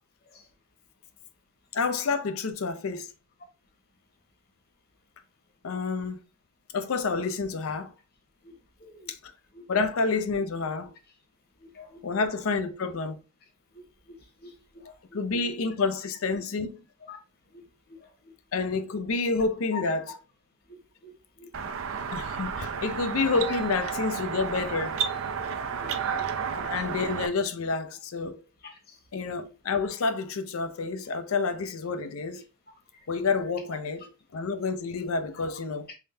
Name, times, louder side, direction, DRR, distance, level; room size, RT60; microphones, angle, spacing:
voice 1, 1.7-3.1 5.6-6.2 6.7-7.9 9.1-9.3 9.7-10.9 12.0-13.2 15.1-16.8 18.5-20.0 22.1-25.1 26.6-28.4 29.1-32.4 33.1-34.0 34.3-35.9, left 4 dB, 85° left, 0.5 m, -29 dB
voice 2, 8.4-9.1 9.5-9.7 11.6-12.0 13.7-15.6 17.1-17.2 17.5-18.2 18.9-19.0 19.7-19.8 20.7-21.5 21.9-22.1 25.8-26.7 28.6-29.0 35.9-36.0, left 4 dB, 50° left, 1.2 m, -48 dB
sound 1, 21.5-27.3, right 6 dB, 75° right, 0.5 m, -32 dB
3.7 x 3.3 x 2.6 m
head